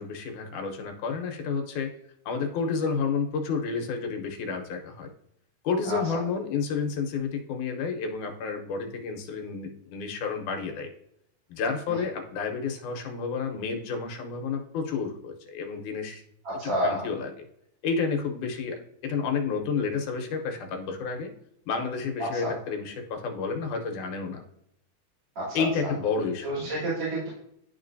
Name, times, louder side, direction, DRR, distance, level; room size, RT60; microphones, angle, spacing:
voice 1, 0.0-1.9 2.3-5.1 5.6-10.9 11.5-16.2 16.8-17.3 17.8-21.3 21.7-24.4 25.5-26.7, left 5 dB, 80° left, 3 dB, 2.4 m, -30 dB
voice 2, 16.4-17.0 22.2-22.5 25.4-25.9 26.4-27.3, right 1 dB, 45° right, -11 dB, 3.8 m, -30 dB
11.5 x 4.1 x 2.6 m, 0.76 s
omnidirectional pair, 3.6 m